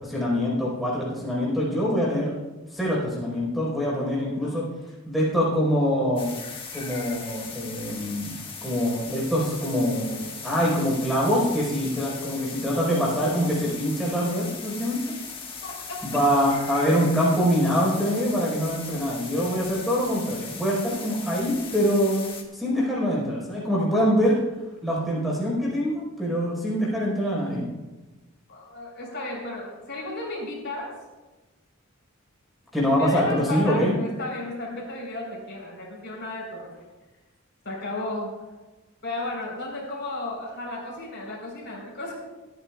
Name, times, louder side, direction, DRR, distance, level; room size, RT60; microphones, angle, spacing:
voice 1, 0.0-2.3 2.7-4.6 5.1-6.3 6.7-8.3 8.6-15.0 16.0-22.2 22.5-24.4 24.8-27.7 32.7-34.0, equal, ahead, -5 dB, 4.6 m, -24 dB
sound 1, 6.2-22.4, left 5 dB, 25° left, 1.5 m, -39 dB
voice 2, 15.6-16.3 28.5-30.9 32.9-36.7 37.6-38.3 39.0-42.1, left 2 dB, 55° left, -2 dB, 4.3 m, -34 dB
28.0 x 9.6 x 2.4 m, 1.1 s
head